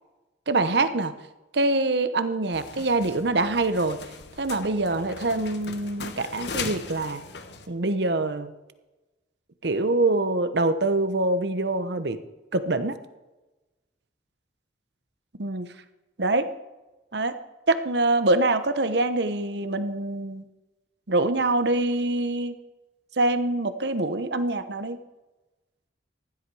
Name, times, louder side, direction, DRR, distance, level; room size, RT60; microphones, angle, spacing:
voice 1, 0.5-1.1 1.5-4.0 4.4-7.2 7.7-8.5 9.6-12.2 12.5-12.9 15.4-15.7 16.2-16.5 17.1-17.3 17.7-20.4 21.1-22.6 23.2-25.0, right 2 dB, 65° right, 11 dB, 1.0 m, -24 dB
sound 1, 2.5-7.7, left 5 dB, 65° left, 1.2 m, -39 dB
15.5 x 11.5 x 4.8 m, 1.1 s
head